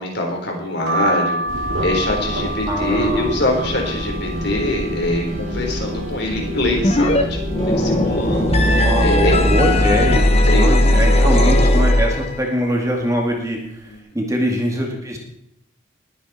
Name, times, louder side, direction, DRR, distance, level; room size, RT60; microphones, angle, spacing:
voice 1, 0.0-7.4 7.7-9.4 10.4-11.4 13.9-14.0, left 1 dB, 50° left, 1 dB, 3.8 m, -24 dB
sound 1, 0.9-6.5 7.0-7.8 8.2-8.3 8.4-9.6 10.0-10.4 11.2-11.5 12.3-12.5 12.8-13.0, right 1 dB, 55° right, 2.1 m, -29 dB
sound 2, 1.5-10.2, equal, 75° right, 2.4 m, -27 dB
voice 2, 2.7-3.4 8.8-15.2, equal, 15° right, 1 dB, 2.2 m, -23 dB
sound 3, 6.8-7.2 7.5-12.4, left 1 dB, 30° left, 1.2 m, -16 dB
20.5 x 9.4 x 4.3 m, 0.76 s
head